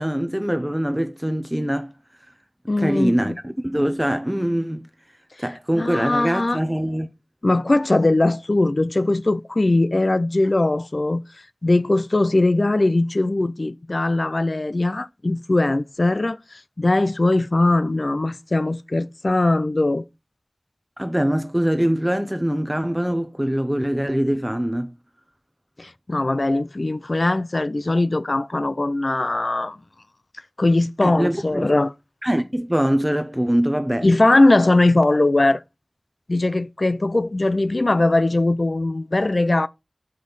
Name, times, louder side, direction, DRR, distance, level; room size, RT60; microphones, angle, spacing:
voice 1, 0.0-1.9 2.8-3.3 3.6-4.9 5.4-7.1 21.0-24.9 31.0-31.7 32.2-34.1, equal, 10° right, 0.7 m, -23 dB
voice 2, 2.7-3.4 5.8-6.6 7.4-11.2 11.6-20.0 25.8-29.8 30.6-31.9 34.0-35.6 36.3-39.7, left 2 dB, 60° left, 0.3 m, -20 dB
6.2 x 5.2 x 4.0 m
wide cardioid pair, 50°, 0 cm